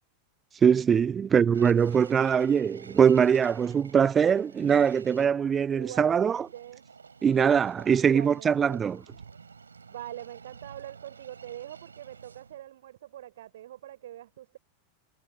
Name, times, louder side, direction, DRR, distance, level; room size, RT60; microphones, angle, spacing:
voice 1, 0.6-6.5 7.2-9.0, right 7 dB, 20° right, 0.6 m, -22 dB
sound 1, 1.5-5.3 6.3-12.6, right 5 dB, 75° right, 3.3 m, -50 dB
voice 2, 5.7-6.9 8.0-8.8 9.9-14.6, right 12 dB, 60° right, 3.7 m, -43 dB
figure-of-eight pair, 90°, 0 cm